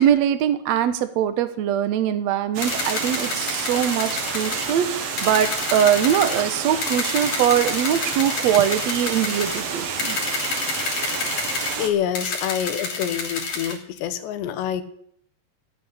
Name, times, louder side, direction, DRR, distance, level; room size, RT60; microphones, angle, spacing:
voice 1, 0.0-10.2, right 10 dB, 75° right, 11 dB, 1.6 m, -22 dB
Water, 2.5-11.9, right 6 dB, 50° right, 2.0 m, -30 dB
sound 1, 2.6-4.7 5.2-6.4 6.8-9.6 10.0-11.8 12.2-13.8, left 4 dB, 65° left, 4.9 m, -29 dB
voice 2, 11.8-14.8, left 9 dB, 85° left, 11 dB, 3.4 m, -27 dB
15.5 x 8.3 x 9.9 m, 0.68 s
omnidirectional pair, 4.9 m